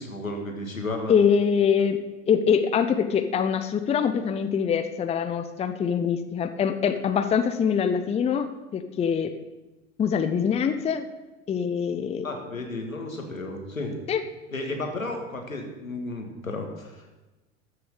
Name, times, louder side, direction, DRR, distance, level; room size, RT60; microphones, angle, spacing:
voice 1, 0.0-1.1 12.2-14.0 14.5-17.1, left 2 dB, 85° left, 3 dB, 2.0 m, -33 dB
voice 2, 1.1-2.0 2.3-9.3 10.0-11.0 11.5-12.3 14.1-14.2, left 7 dB, 15° left, 9 dB, 0.7 m, -24 dB
13.0 x 6.8 x 6.7 m, 1.1 s
figure-of-eight pair, 80°, 40 cm